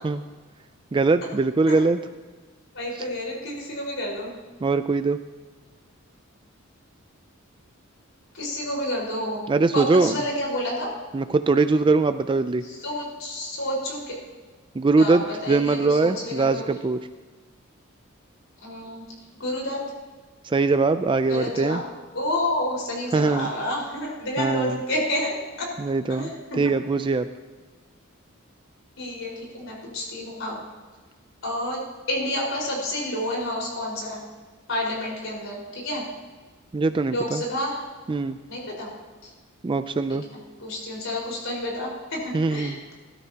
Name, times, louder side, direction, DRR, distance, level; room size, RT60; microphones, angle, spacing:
voice 1, 0.9-2.0 4.6-5.2 9.5-10.2 11.1-12.6 14.7-17.0 20.4-21.8 23.1-23.5 24.4-24.8 25.8-26.3 26.6-27.3 36.7-37.4 38.1-38.4 39.6-40.3 42.3-42.8, right 3 dB, 25° right, 10 dB, 0.4 m, -22 dB
voice 2, 2.7-4.3 8.3-9.4 9.7-10.9 12.6-14.1 15.0-16.7 18.6-19.0 19.4-19.8 21.3-21.8 22.1-25.7 26.1-26.7 29.0-30.6 31.4-31.8 32.1-34.2 34.7-36.0 37.1-37.8 38.5-38.9 39.2-39.3 40.6-42.8, left 1 dB, 65° left, -2 dB, 4.8 m, -29 dB
21.0 x 13.0 x 2.9 m, 1.4 s
head